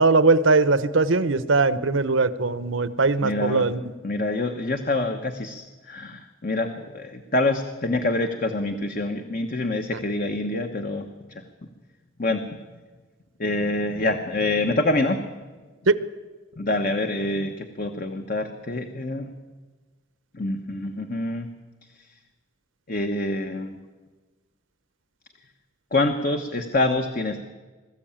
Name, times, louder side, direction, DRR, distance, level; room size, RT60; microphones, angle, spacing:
voice 1, 0.0-3.8 15.9-16.0, right 3 dB, 75° right, 15 dB, 0.9 m, -20 dB
voice 2, 3.2-3.7 4.0-11.5 12.2-12.4 13.4-15.2 16.6-19.3 20.3-21.5 22.0-22.1 22.9-23.8 25.9-27.4, left 2 dB, 45° left, 6 dB, 1.1 m, -26 dB
22.0 x 14.0 x 8.9 m, 1.3 s
head